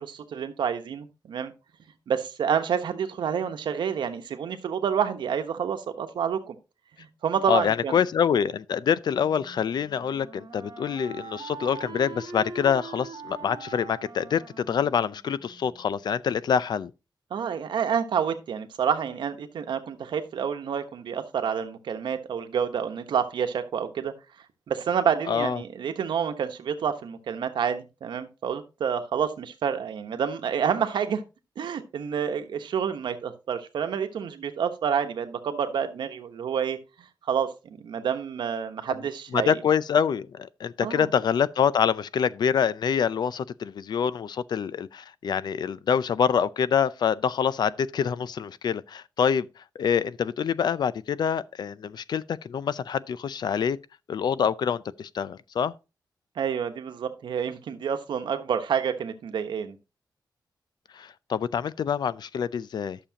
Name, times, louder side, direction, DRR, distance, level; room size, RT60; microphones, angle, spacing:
voice 1, 0.0-1.5 2.1-6.5 7.0-8.0 17.3-24.1 24.7-31.2 31.6-36.8 37.3-37.5 37.8-39.6 40.8-41.1 56.4-59.8, right 7 dB, 90° right, 1.1 m, -28 dB
voice 2, 7.5-16.9 25.3-25.6 39.3-49.5 49.8-53.8 54.1-55.7 60.9-63.0, left 7 dB, 65° left, 0.5 m, -26 dB
Wind instrument woodwind instrument, 9.1-16.0, right 4 dB, 65° right, 2.3 m, -43 dB
11.5 x 6.8 x 2.9 m
wide cardioid pair, 120°, 8 cm